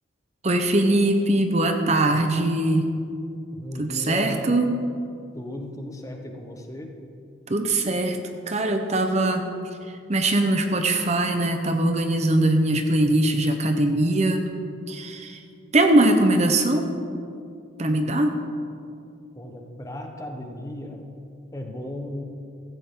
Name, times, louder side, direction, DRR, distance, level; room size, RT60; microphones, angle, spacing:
voice 1, 0.4-2.9 3.8-4.7 7.5-8.2 8.5-9.5 9.9-14.5 14.9-15.4 15.7-16.9 17.8-18.4, right 1 dB, 35° right, 5 dB, 0.8 m, -21 dB
voice 2, 3.5-4.5 5.3-6.9 19.3-21.0 21.5-22.2, left 1 dB, 15° left, 3 dB, 1.1 m, -35 dB
16.5 x 14.5 x 3.8 m, 2.5 s
head